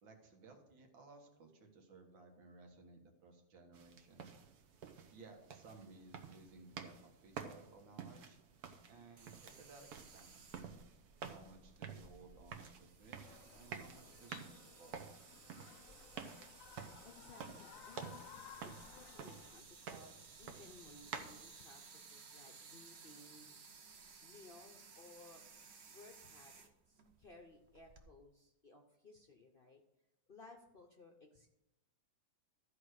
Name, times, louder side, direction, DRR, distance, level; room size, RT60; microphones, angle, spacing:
voice 1, 0.0-4.3 5.1-8.4 8.9-10.7 11.3-15.0, right 3 dB, 80° right, 3 dB, 2.2 m, -59 dB
sound 1, 3.7-21.4, right 6 dB, 60° right, 1.3 m, -51 dB
sound 2, 9.2-28.1, right 5 dB, 45° right, 1.0 m, -59 dB
sound 3, 13.2-19.6, left 10 dB, 80° left, 0.7 m, -58 dB
voice 2, 17.0-18.2 18.6-23.7 24.2-25.4 25.9-29.8 30.3-31.5, left 3 dB, 45° left, 3 dB, 0.8 m, -60 dB
13.0 x 4.9 x 6.4 m, 0.87 s
omnidirectional pair, 2.0 m